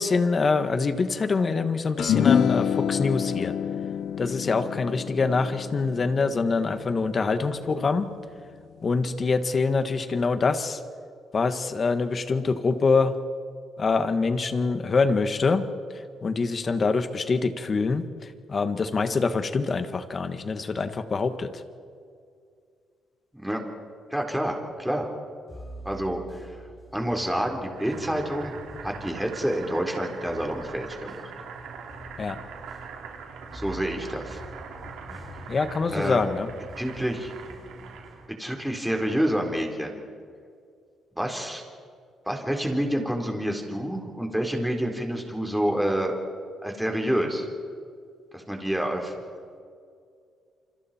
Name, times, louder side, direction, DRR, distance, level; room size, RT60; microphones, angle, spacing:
voice 1, 0.0-3.5 4.2-8.1 8.8-10.8 11.3-13.1 13.8-21.6 32.2-32.4 35.5-36.5, left 4 dB, 40° left, 9 dB, 1.8 m, -25 dB
sound 1, 2.0-8.5, left 8 dB, 70° left, 0.6 m, -27 dB
voice 2, 24.1-25.1 25.8-26.6 26.9-28.5 28.8-31.3 33.5-34.4 35.9-36.2 36.8-37.3 38.4-40.0 41.2-41.6 42.3-46.1 46.6-47.5 48.3-49.1, equal, 5° right, 1 dB, 4.3 m, -28 dB
sound 2, 25.5-38.2, equal, 15° left, 5.6 m, -46 dB
Boiling, 27.7-38.3, right 6 dB, 85° right, 3.3 m, -42 dB
28.5 x 25.5 x 4.6 m, 2.3 s
cardioid pair, 90°, 0 cm